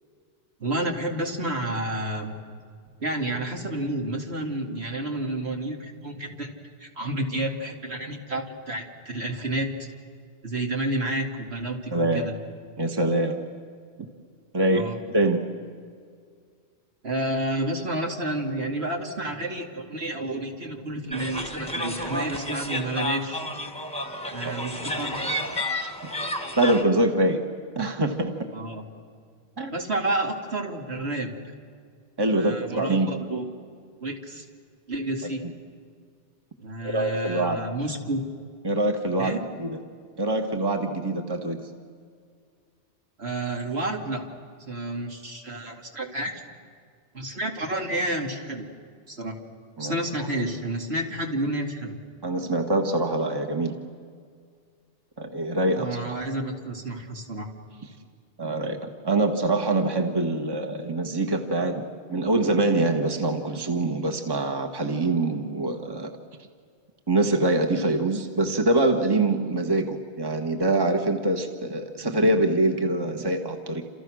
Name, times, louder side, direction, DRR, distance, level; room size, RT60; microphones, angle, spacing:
voice 1, 0.6-2.3 3.0-6.5 6.8-9.9 10.4-12.3 14.7-15.0 17.0-23.5 24.3-25.2 28.5-28.8 29.7-31.3 32.3-33.4 34.0-34.4 34.9-35.4 36.6-38.2 39.2-39.4 43.2-44.3 44.6-46.4 47.1-48.7 49.1-49.4 49.8-52.0 55.8-57.5, right 1 dB, 65° right, 1 dB, 2.7 m, -30 dB
voice 2, 11.9-12.3 12.8-13.4 14.5-14.8 15.1-15.4 24.4-24.6 26.0-26.1 26.6-27.4 27.7-28.3 29.6-29.7 32.2-33.1 36.8-37.6 38.6-39.8 40.2-41.7 49.8-50.0 52.2-53.8 55.2-56.0 58.4-66.1 67.1-73.8, right 2 dB, 20° right, 4 dB, 1.5 m, -24 dB
sound 1, 21.1-26.8, left 1 dB, 5° left, 1.6 m, -31 dB
29.5 x 27.5 x 6.3 m, 2.1 s
omnidirectional pair, 1.2 m